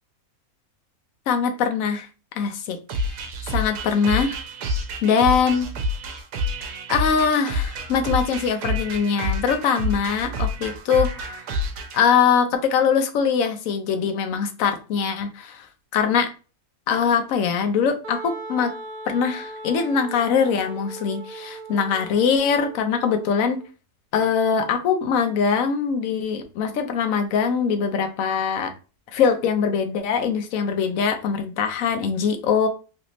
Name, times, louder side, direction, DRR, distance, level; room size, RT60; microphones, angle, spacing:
voice 1, 1.3-2.1 2.4-3.1 3.5-4.4 5.0-5.7 6.9-11.3 11.9-15.7 15.9-16.3 16.9-18.7 19.1-23.6 24.1-28.7 29.1-32.7, left 6 dB, 65° left, 6 dB, 1.0 m, -22 dB
sound 1, 2.9-12.0, left 1 dB, 85° right, 1.2 m, -28 dB
Wind instrument woodwind instrument, 18.0-23.7, right 3 dB, 70° right, 1.1 m, -38 dB
3.3 x 2.6 x 3.0 m, 0.34 s
omnidirectional pair, 1.7 m